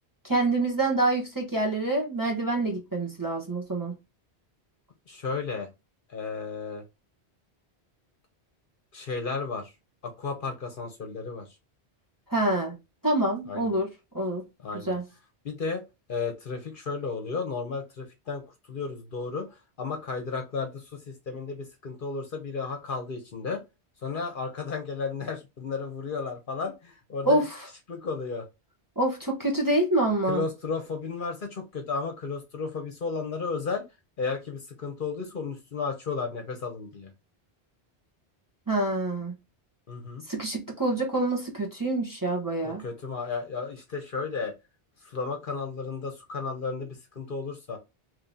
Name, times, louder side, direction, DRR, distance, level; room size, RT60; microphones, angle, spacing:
voice 1, 0.2-3.9 12.3-12.8 13.0-13.9 14.1-14.4 14.8-15.0 27.2-27.6 29.0-30.4 38.7-39.3 40.3-42.8, right 2 dB, 20° right, 1.0 m, -26 dB
voice 2, 5.1-5.7 6.1-6.8 8.9-9.7 10.0-11.5 13.5-13.7 14.6-15.0 15.4-15.8 16.1-18.4 18.7-19.5 19.8-23.6 24.0-27.4 27.9-28.4 30.3-33.9 34.2-37.1 39.9-40.2 42.6-44.5 45.0-47.8, left 4 dB, 55° left, 0.9 m, -33 dB
3.1 x 2.8 x 3.6 m
omnidirectional pair, 1.1 m